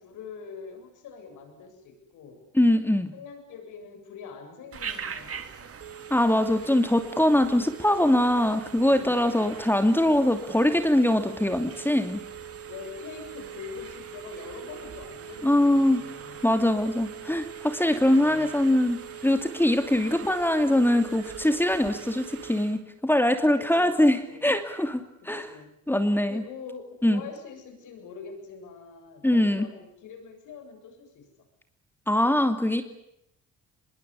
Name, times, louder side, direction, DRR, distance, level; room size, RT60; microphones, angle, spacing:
voice 1, 0.0-2.4 3.1-5.7 8.6-9.6 12.7-16.5 18.0-18.6 23.6-24.5 25.2-25.7 26.3-31.3, left 5 dB, 85° left, 6 dB, 7.8 m, -44 dB
voice 2, 2.5-3.1 6.1-12.2 15.4-16.0 16.4-25.5 25.9-26.4 27.0-27.2 29.2-29.7 32.1-32.8, left 1 dB, 5° left, 7 dB, 2.8 m, -23 dB
Telephone, 4.7-22.8, right 8 dB, 50° right, 3.1 m, -41 dB
24.5 x 22.0 x 9.9 m, 0.77 s
cardioid pair, 90°, 30 cm